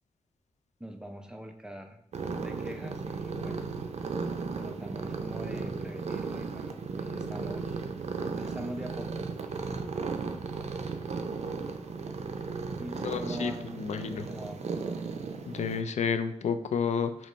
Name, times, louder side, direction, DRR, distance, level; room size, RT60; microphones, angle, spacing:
voice 1, 0.8-2.0 2.4-3.6 4.5-7.9 8.4-9.3 12.8-14.7, equal, 5° right, 4 dB, 0.5 m, -43 dB
sound 1, 2.1-15.8, right 4 dB, 65° right, 0.5 m, -35 dB
voice 2, 13.0-14.2 15.5-17.3, left 6 dB, 70° left, 9 dB, 0.4 m, -31 dB
5.2 x 3.0 x 3.2 m, 0.72 s
wide cardioid pair, 95°, 12 cm